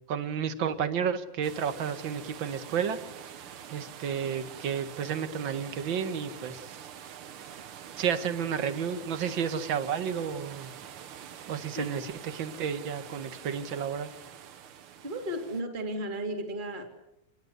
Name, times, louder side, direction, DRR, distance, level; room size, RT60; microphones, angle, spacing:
voice 1, 0.1-3.0 3.7-6.8 8.0-10.7 11.5-14.1, right 7 dB, 45° right, 10 dB, 1.9 m, -31 dB
sound 1, 1.4-15.6, right 9 dB, 75° right, 1.3 m, -46 dB
voice 2, 15.0-16.9, right 1 dB, 15° right, 4 dB, 2.9 m, -34 dB
28.0 x 21.0 x 8.2 m, 0.83 s
omnidirectional pair, 4.0 m